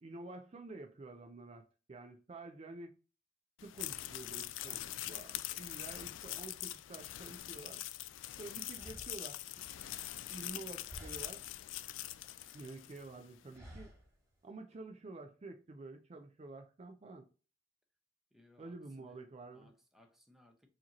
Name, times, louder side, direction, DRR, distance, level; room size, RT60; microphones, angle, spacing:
voice 1, 0.0-2.9 3.6-7.8 8.4-9.4 10.3-11.4 12.5-13.9 14.4-17.2 18.6-19.7, right 2 dB, 35° right, 0.4 m, -49 dB
sound 1, 3.6-13.1, left 14 dB, 85° left, 0.3 m, -44 dB
sound 2, 8.2-8.3 8.7-10.6 10.9-11.6 11.9-12.8 13.5-14.2, equal, 20° right, 2.4 m, -54 dB
voice 2, 18.3-19.2 19.5-20.7, left 1 dB, ahead, 0.7 m, -65 dB
4.8 x 2.9 x 2.9 m
head